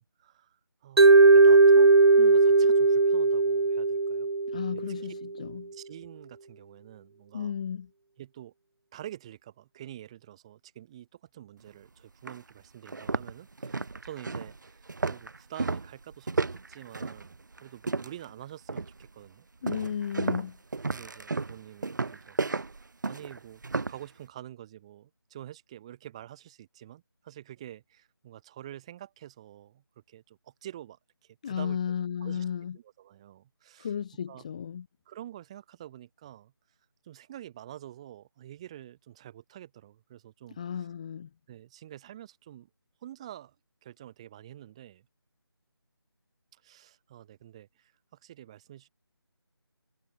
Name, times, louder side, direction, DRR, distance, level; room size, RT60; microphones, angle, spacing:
voice 1, 0.0-4.3 4.7-4.8 5.7-7.5 8.2-8.5 8.9-16.3 16.7-19.9 20.9-22.6 23.1-31.9 32.2-32.4 32.7-33.9 34.3-34.4 35.1-36.5 37.0-40.6 41.5-42.7 43.0-43.5 43.8-45.1 46.5-47.9 48.2-48.9, right 12 dB, 15° right, 7.5 m, -47 dB
Mallet percussion, 1.0-5.1, right 3 dB, 90° right, 0.9 m, -18 dB
voice 2, 4.5-5.7 7.3-7.9 19.6-20.6 31.4-32.8 33.8-34.9 40.6-41.3, left 8 dB, 15° left, 1.9 m, -34 dB
sound 1, 11.7-11.8 12.3-12.4 12.8-18.3 18.7-19.1 19.7-24.0, right 3 dB, 50° right, 3.1 m, -33 dB
figure-of-eight pair, 175°, 13 cm